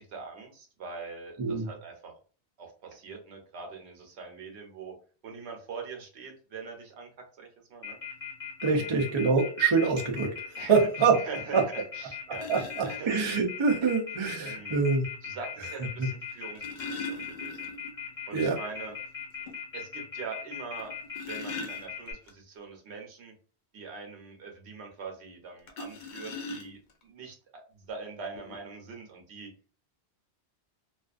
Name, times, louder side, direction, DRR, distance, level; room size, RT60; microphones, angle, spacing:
voice 1, 0.0-2.1 2.6-4.9 5.2-7.1 7.4-8.0 8.7-9.0 10.6-10.9 11.2-13.1 13.8-13.9 14.4-14.8 15.2-17.7 18.3-18.9 19.7-20.9 21.2-23.3 23.7-27.4 27.7-29.5, right 4 dB, 80° right, 2 dB, 1.0 m, -43 dB
Telephone, 7.8-22.1, left 8 dB, 35° left, 1.1 m, -39 dB
voice 2, 8.6-11.2 11.5-11.6 12.5-15.0 16.0-16.1 18.3-18.6, right 5 dB, 40° right, 1 dB, 0.5 m, -25 dB
sound 1, 11.7-11.8 12.3-13.0 14.4-14.5 16.3-18.0 18.3-18.4 18.9-19.0 19.5-19.6 20.8-22.3 25.7-27.0 27.9-28.0 28.3-28.6, left 3 dB, 60° left, 0.6 m, -40 dB
2.4 x 2.3 x 2.4 m, 0.39 s
omnidirectional pair, 1.1 m